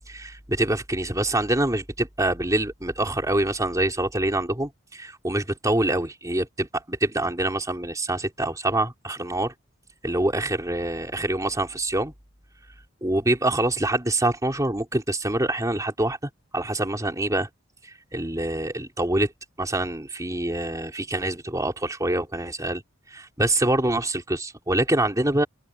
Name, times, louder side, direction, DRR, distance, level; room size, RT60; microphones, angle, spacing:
voice 1, 0.1-9.5 10.0-12.1 13.0-16.2 16.5-17.5 17.8-19.3 19.6-22.8 23.1-25.5, right 1 dB, 15° right, 3.7 m, -25 dB
open air
head